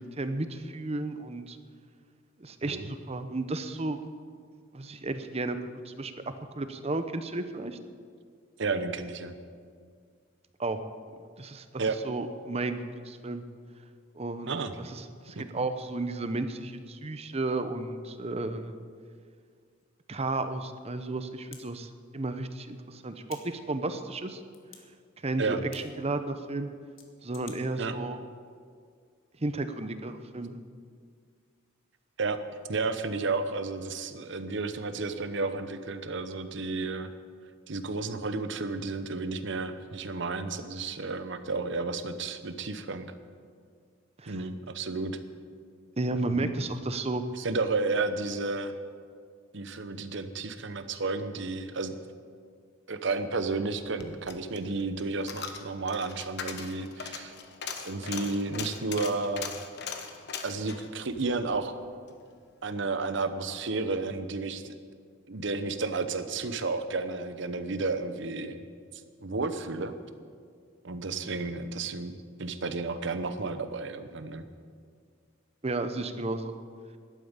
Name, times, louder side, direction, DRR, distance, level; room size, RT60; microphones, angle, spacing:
voice 1, 0.2-1.6 2.4-4.0 4.7-5.6 5.9-6.1 6.6-7.8 10.6-10.8 11.4-12.8 13.0-13.4 14.1-18.8 20.1-24.4 25.2-26.7 27.2-28.2 29.4-30.6 44.2-44.3 46.0-47.2 75.6-76.6, right 2 dB, 30° right, 9 dB, 0.8 m, -33 dB
voice 2, 8.6-9.3 11.8-12.0 14.5-14.7 15.3-15.7 25.4-25.6 27.8-27.9 32.2-32.4 32.7-37.1 37.7-43.1 44.3-45.2 46.2-46.6 47.4-48.7 49.5-52.0 52.9-57.3 57.7-59.5 60.4-61.7 62.6-64.7 65.3-68.6 69.2-69.9 70.8-74.4, right 3 dB, 65° right, 10 dB, 0.9 m, -32 dB
sound 1, 19.8-19.9 21.5-21.6 23.2-23.4 24.5-24.8 25.7-25.8 27.0-27.6, left 8 dB, 85° left, 1.8 m, -48 dB
Coin (dropping), 53.8-62.2 62.5-62.6, left 6 dB, 55° left, 1.2 m, -40 dB
12.0 x 8.9 x 8.9 m, 2.1 s
head